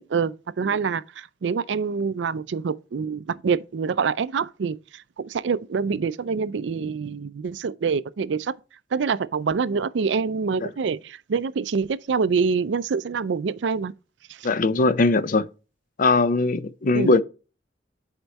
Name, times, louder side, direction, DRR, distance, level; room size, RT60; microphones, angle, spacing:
voice 1, 0.0-8.5 8.9-13.9 14.4-14.5 16.9-17.1, right 5 dB, 85° right, 0.4 m, -26 dB
voice 2, 14.4-15.5 16.0-17.2, left 3 dB, 50° left, 0.5 m, -20 dB
8.0 x 4.4 x 4.1 m
head